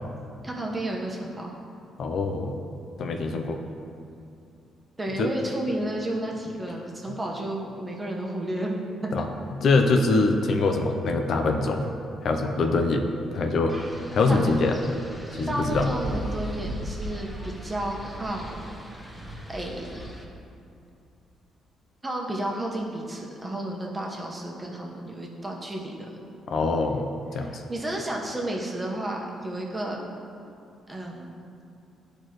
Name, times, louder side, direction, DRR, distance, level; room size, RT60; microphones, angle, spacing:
voice 1, 0.4-1.6 3.3-3.4 5.0-8.7 14.3-14.4 15.5-18.5 19.5-20.0 22.0-26.2 27.4-30.0 30.9-31.4, right 1 dB, 20° right, -1 dB, 1.3 m, -32 dB
voice 2, 2.0-2.5 3.0-3.6 5.2-5.3 9.1-9.3 9.6-11.9 12.2-13.0 13.3-13.8 14.1-14.8 15.3-15.9 26.5-27.1 27.3-27.6, left 3 dB, 60° left, 4 dB, 0.6 m, -23 dB
Wind, 13.7-20.2, right 1 dB, ahead, 1.2 m, -37 dB
12.0 x 4.4 x 3.1 m, 2.7 s
cardioid pair, 90°, 0 cm